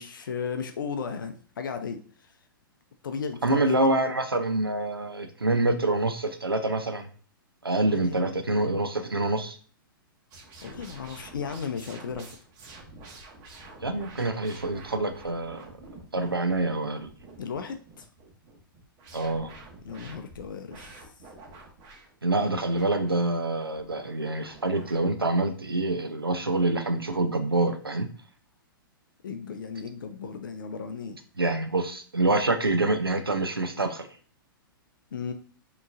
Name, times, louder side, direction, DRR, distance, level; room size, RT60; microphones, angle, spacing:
voice 1, 0.0-2.4 3.0-3.8 7.9-8.2 10.6-12.4 17.4-18.1 19.8-21.0 29.2-31.2 35.1-35.3, left 6 dB, 65° left, 7 dB, 0.5 m, -35 dB
voice 2, 3.4-7.1 7.6-9.6 13.8-15.6 16.1-17.1 19.1-19.5 22.2-28.1 31.4-34.1, right 2 dB, 90° right, 7 dB, 0.6 m, -26 dB
sound 1, 10.3-25.1, right 2 dB, 35° right, 1.2 m, -48 dB
5.9 x 3.0 x 2.5 m, 0.43 s
figure-of-eight pair, 110°, 12 cm